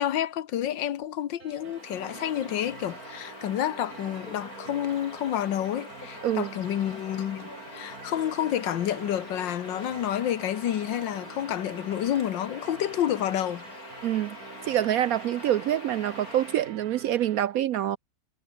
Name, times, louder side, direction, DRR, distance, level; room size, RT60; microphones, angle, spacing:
voice 1, 0.0-13.6, left 11 dB, 75° left, 1.7 m, -29 dB
sound 1, 1.4-17.4, right 9 dB, 55° right, 1.4 m, -47 dB
Bird vocalization bird call bird song, 1.5-16.8, left 3 dB, 45° left, 4.8 m, -44 dB
voice 2, 6.2-6.5 14.0-14.4 14.6-18.0, right 12 dB, 75° right, 0.8 m, -26 dB
omnidirectional pair, 2.1 m